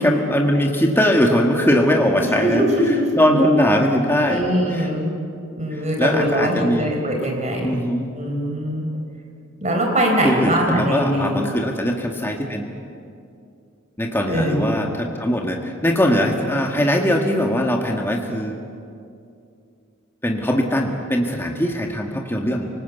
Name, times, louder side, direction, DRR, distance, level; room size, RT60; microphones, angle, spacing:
voice 1, 0.0-4.4 4.7-4.9 5.7-6.9 7.6-8.1 10.2-12.6 14.0-18.6 20.2-22.7, equal, 10° left, 1 dB, 1.7 m, -20 dB
voice 2, 2.2-3.2 4.2-5.1 5.6-7.8 8.1-8.9 9.6-11.4 14.3-14.7, right 1 dB, 35° right, 1 dB, 4.2 m, -22 dB
25.0 x 19.5 x 8.3 m, 2.4 s
head